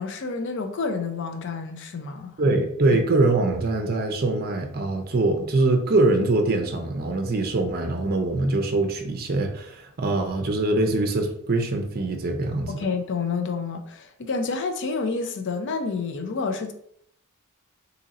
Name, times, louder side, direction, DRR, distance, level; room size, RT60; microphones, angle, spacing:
voice 1, 0.0-2.4 12.7-16.7, left 4 dB, 55° left, 0.5 m, -29 dB
voice 2, 2.4-12.7, right 2 dB, 45° right, 0.5 m, -23 dB
2.8 x 2.5 x 4.0 m
head